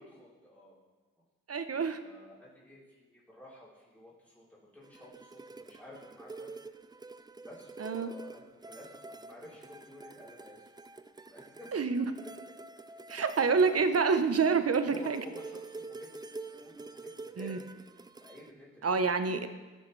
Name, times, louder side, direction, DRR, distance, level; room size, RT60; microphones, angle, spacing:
voice 1, 0.1-0.8 2.0-4.4 4.7-6.5 7.4-10.7 11.2-11.7 12.2-12.3 13.0-13.2 13.6-13.9 14.8-17.6 18.2-18.7, left 1 dB, 5° left, -8 dB, 3.4 m, -52 dB
voice 2, 1.5-2.0 7.8-8.1 11.7-12.0 13.1-15.2 17.4-17.6 18.8-19.5, right 5 dB, 45° right, 10 dB, 0.8 m, -27 dB
sound 1, 4.8-18.5, right 3 dB, 15° right, 0.4 m, -47 dB
14.0 x 6.4 x 3.2 m, 1.3 s
supercardioid pair, 45°, 34 cm